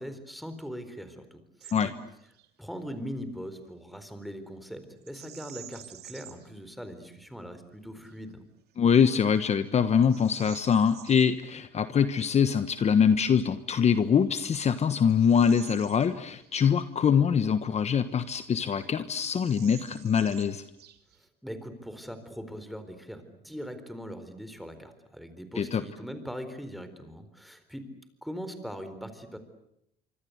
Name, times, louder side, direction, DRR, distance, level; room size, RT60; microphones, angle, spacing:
voice 1, 0.0-1.9 2.6-8.4 21.4-27.9 28.2-29.4, equal, ahead, 10 dB, 4.2 m, -41 dB
Bird vocalization bird call bird song, 1.6-1.9 2.2-2.5 5.0-6.5 7.1-7.2 7.8-8.2 8.7-8.9 9.4-11.3 13.4-13.5 14.2-16.6 16.9-17.0 17.7-18.5 18.8-18.9 19.2-21.3, right 12 dB, 70° right, 2.8 m, -50 dB
voice 2, 8.8-20.6 25.6-25.8, left 7 dB, 40° left, 11 dB, 1.2 m, -24 dB
25.5 x 25.5 x 8.1 m, 0.79 s
cardioid pair, 110°, 17 cm